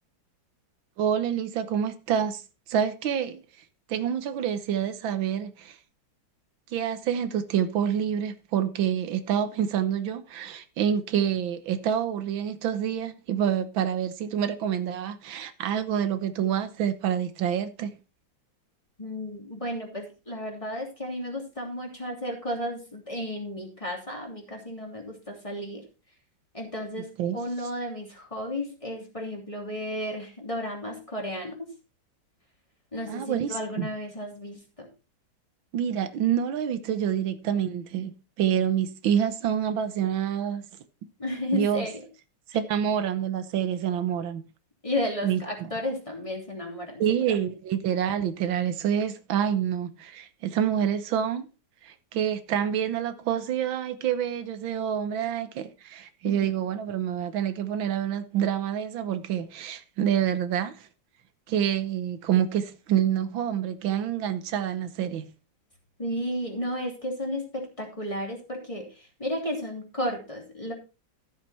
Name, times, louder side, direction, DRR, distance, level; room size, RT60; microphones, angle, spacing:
voice 1, 1.0-2.4 2.7-3.4 3.9-5.8 6.7-17.9 27.2-27.4 33.1-33.9 35.7-40.7 41.5-41.9 42.5-44.4 45.2-45.7 47.0-51.5 51.8-60.9 61.5-65.3, right 9 dB, 90° right, 1.8 m, -27 dB
voice 2, 19.0-25.8 26.5-27.1 27.3-31.7 32.9-34.9 41.2-42.0 44.8-47.0 47.3-47.4 56.2-56.5 66.0-70.7, left 1 dB, 15° left, 3.1 m, -33 dB
13.5 x 7.5 x 4.3 m
omnidirectional pair, 2.1 m